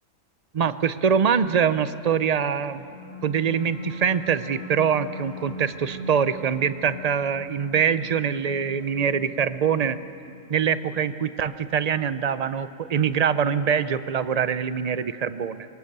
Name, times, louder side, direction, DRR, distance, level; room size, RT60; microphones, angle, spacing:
voice 1, 0.5-2.9 3.2-10.0 10.5-15.7, right 7 dB, 45° right, 13 dB, 0.5 m, -24 dB
sound 1, 2.6-13.5, equal, 55° left, 4.3 m, -41 dB
26.0 x 23.0 x 6.7 m, 2.6 s
omnidirectional pair, 1.4 m